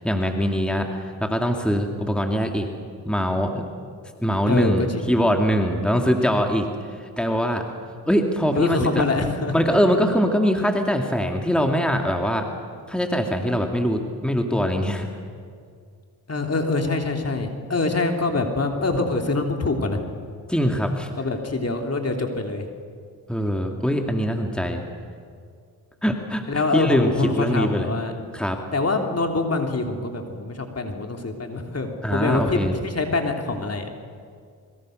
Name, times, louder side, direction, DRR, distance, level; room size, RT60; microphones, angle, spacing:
voice 1, 0.0-2.7 3.1-3.6 4.2-6.7 7.0-7.6 8.1-9.0 9.5-12.5 12.9-15.1 20.5-21.1 23.3-24.8 26.0-27.9 28.3-28.6 32.0-32.7, equal, ahead, 3 dB, 2.6 m, -22 dB
voice 2, 4.4-5.1 8.5-9.8 16.3-20.0 21.2-22.7 26.5-28.1 28.7-33.9, left 3 dB, 35° left, 3 dB, 3.3 m, -25 dB
26.0 x 22.5 x 6.6 m, 2.1 s
cardioid pair, 60°, 41 cm